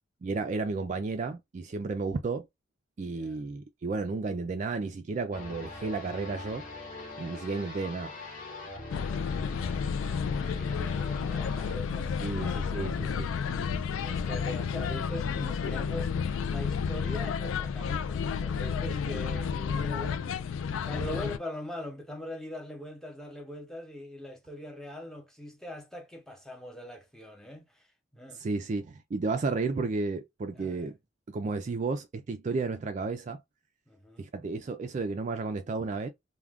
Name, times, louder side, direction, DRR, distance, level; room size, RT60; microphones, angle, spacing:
voice 1, 0.2-2.5 3.0-6.6 7.2-8.1 12.2-13.3 28.3-31.0 31.3-33.4 34.2-36.1, right 3 dB, 35° right, 0.3 m, -32 dB
voice 2, 3.1-3.5 8.9-9.4 10.3-13.2 14.0-16.1 16.5-20.4 20.9-27.9 28.1-28.4 30.5-30.9 33.9-34.3, left 1 dB, ahead, 0.7 m, -42 dB
sound 1, 5.3-11.8, left 2 dB, 40° left, 0.9 m, -42 dB
sound 2, 8.9-21.4, left 6 dB, 75° left, 0.3 m, -31 dB
2.4 x 2.2 x 3.4 m
head